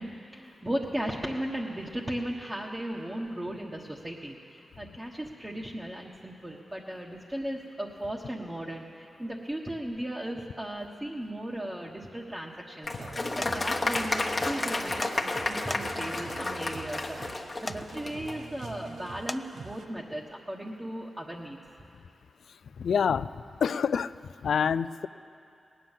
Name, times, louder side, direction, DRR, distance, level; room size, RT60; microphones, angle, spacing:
voice 1, 0.0-17.2 17.6-21.6, right 1 dB, 20° right, -4 dB, 1.4 m, -36 dB
Applause, 12.8-18.4, left 2 dB, 35° left, 1.3 m, -31 dB
sound 1, 13.0-19.9, right 4 dB, 85° right, 0.7 m, -45 dB
sound 2, 13.4-13.5 15.0-15.2 15.7-16.1 17.7-17.8 19.3-19.4, left 1 dB, 15° left, 0.4 m, -35 dB
voice 2, 22.8-24.1 24.4-25.1, left 7 dB, 85° left, 15 dB, 0.3 m, -27 dB
18.5 x 9.8 x 7.4 m, 2.5 s
cardioid pair, 65°, 0 cm